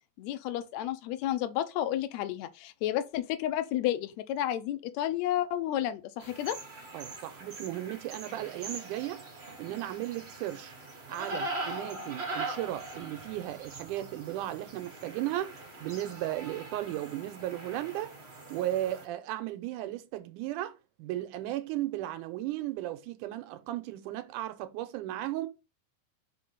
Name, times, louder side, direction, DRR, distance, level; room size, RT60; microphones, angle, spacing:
voice 1, 0.2-6.6, left 12 dB, 75° left, 1.8 m, -31 dB
sound 1, 6.2-19.1, right 2 dB, 70° right, 0.6 m, -42 dB
voice 2, 6.9-9.2 9.6-10.7 11.1-18.1 18.5-25.5, right 14 dB, 90° right, 2.2 m, -35 dB
5.0 x 3.8 x 5.5 m
omnidirectional pair, 3.6 m